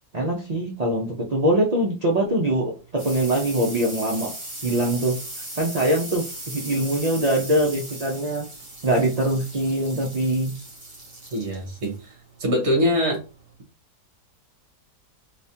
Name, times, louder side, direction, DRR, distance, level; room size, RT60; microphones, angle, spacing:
voice 1, 0.1-4.3 4.6-5.2 5.6-8.4 8.8-10.5, right 1 dB, 75° right, 0.3 m, -23 dB
sound 1, 2.3-13.5, right 1 dB, 25° right, 1.6 m, -39 dB
voice 2, 11.3-13.2, equal, 45° right, 1.5 m, -24 dB
3.4 x 2.9 x 2.7 m
omnidirectional pair, 1.7 m